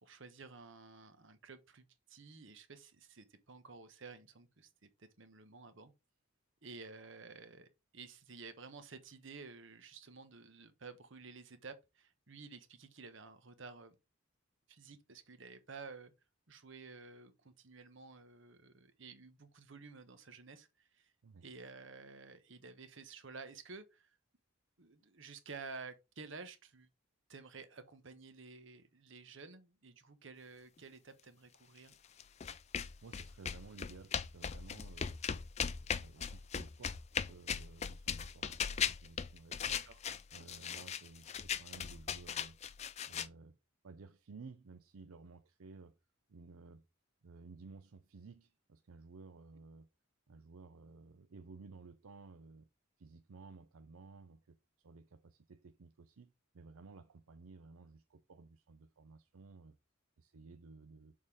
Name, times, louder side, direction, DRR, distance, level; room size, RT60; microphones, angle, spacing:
voice 1, 0.0-5.9 6.6-13.9 14.7-16.1 16.5-21.1 21.4-24.1 24.8-26.9 27.3-31.9 39.6-40.0, right 4 dB, 60° right, 1.0 m, -52 dB
sound 1, 32.2-43.3, left 7 dB, 30° left, 0.4 m, -39 dB
voice 2, 33.0-35.2 35.6-39.8 40.3-42.6 43.1-43.6 43.8-46.0 46.3-46.8 47.2-49.9 50.3-52.7 53.0-59.8 60.2-61.1, right 4 dB, 85° right, 0.6 m, -55 dB
6.5 x 3.7 x 4.8 m
head